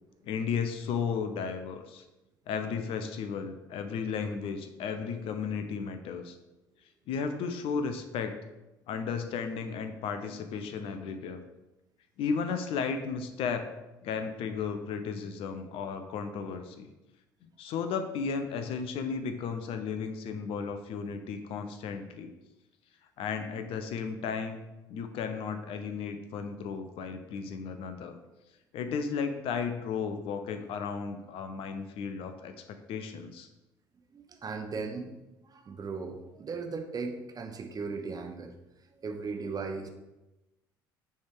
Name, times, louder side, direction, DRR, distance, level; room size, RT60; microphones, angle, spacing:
voice 1, 0.2-2.0 2.5-6.3 7.1-8.4 8.9-11.4 12.2-13.7 14.0-16.9 17.6-22.3 23.2-24.6 24.9-28.2 28.7-32.5 32.9-33.5, left 6 dB, 60° left, 8 dB, 0.6 m, -34 dB
voice 2, 34.1-35.1 35.4-38.6 39.0-39.9, right 4 dB, 35° right, 5 dB, 0.9 m, -37 dB
6.4 x 3.5 x 4.7 m, 1.0 s
hypercardioid pair, 55°, 11 cm